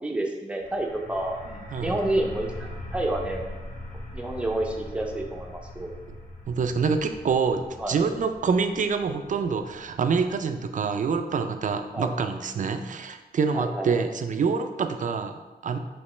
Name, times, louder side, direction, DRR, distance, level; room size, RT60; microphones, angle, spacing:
voice 1, 0.0-3.5 4.1-5.9 7.8-8.0 11.9-12.1 13.5-14.1, right 1 dB, 5° right, 1 dB, 0.6 m, -29 dB
sound 1, 0.6-12.1, left 1 dB, 55° left, 0.9 m, -41 dB
voice 2, 6.5-15.8, right 5 dB, 50° right, 7 dB, 0.4 m, -26 dB
5.0 x 3.1 x 3.2 m, 1.2 s
wide cardioid pair, 115°, 17 cm